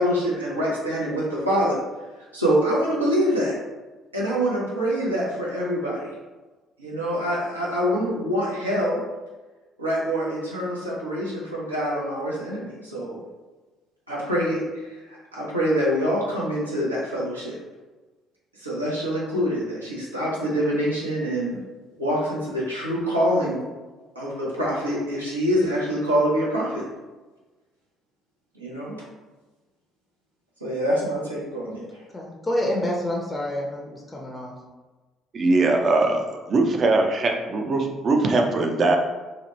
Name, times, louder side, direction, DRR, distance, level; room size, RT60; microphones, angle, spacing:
voice 1, 0.0-1.8 2.3-3.5 4.1-6.1 6.8-9.0 9.8-13.2 14.1-17.5 18.5-21.6 22.0-23.6 24.1-26.9 28.6-29.0 30.6-32.0, equal, 90° right, -6 dB, 0.6 m, -25 dB
voice 2, 32.1-34.5, left 1 dB, 15° left, -2 dB, 0.5 m, -28 dB
voice 3, 35.3-36.2 36.5-39.0, right 2 dB, 45° right, 2 dB, 0.4 m, -21 dB
2.9 x 2.1 x 3.0 m, 1.2 s
figure-of-eight pair, 50°, 0 cm